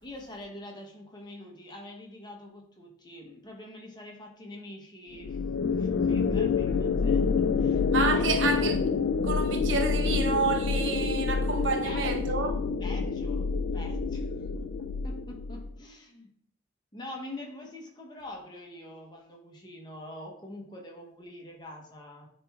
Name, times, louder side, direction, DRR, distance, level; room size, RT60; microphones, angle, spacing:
voice 1, 0.0-7.8 8.1-8.5 11.8-13.5 13.7-14.3 14.5-16.3 16.9-22.3, left 1 dB, 25° left, 1.1 m, -45 dB
sound 1, 5.2-15.7, left 5 dB, 70° left, 0.3 m, -27 dB
voice 2, 7.9-8.8 9.2-12.5, right 4 dB, 90° right, 0.8 m, -29 dB
9.3 x 3.2 x 3.5 m
head